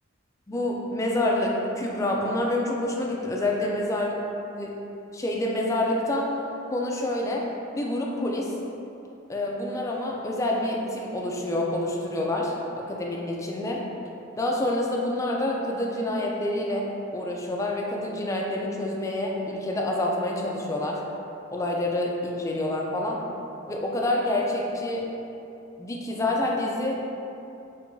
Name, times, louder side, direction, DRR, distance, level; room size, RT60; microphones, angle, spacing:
voice 1, 0.5-4.1 4.6-4.7 5.1-6.3 6.7-7.4 7.7-8.5 9.3-13.8 14.4-16.9 17.1-21.0 21.5-23.2 23.7-25.0 25.8-27.0, left 1 dB, 15° left, -1 dB, 0.3 m, -27 dB
4.5 x 2.3 x 2.6 m, 2.8 s
head